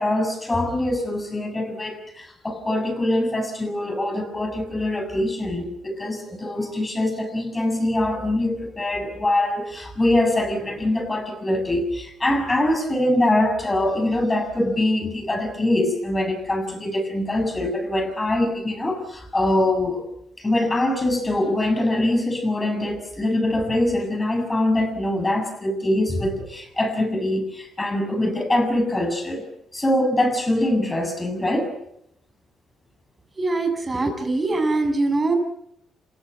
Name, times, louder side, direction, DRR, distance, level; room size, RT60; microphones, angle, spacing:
voice 1, 0.0-20.0 20.4-29.4 29.7-31.7, left 1 dB, 20° left, 6 dB, 7.1 m, -23 dB
voice 2, 33.4-35.3, right 2 dB, 25° right, 5 dB, 7.2 m, -22 dB
28.0 x 17.0 x 8.4 m, 0.78 s
cardioid pair, 90°, 0 cm